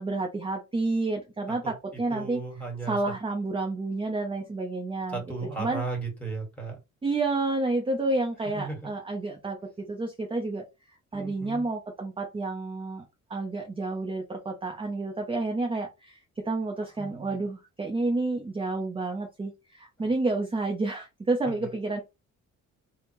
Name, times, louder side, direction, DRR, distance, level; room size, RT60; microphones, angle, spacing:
voice 1, 0.0-2.4 2.9-5.2 5.6-5.8 7.0-9.6 9.9-10.7 11.1-13.0 13.3-22.0, right 2 dB, 20° right, 0.7 m, -30 dB
voice 2, 1.5-3.0 4.4-4.5 5.1-6.8 8.4-8.9 11.1-11.7 16.7-17.5 20.0-20.1 21.4-21.7, right 3 dB, 5° left, 1.7 m, -36 dB
3.4 x 2.2 x 3.0 m
cardioid pair, 90°, 30 cm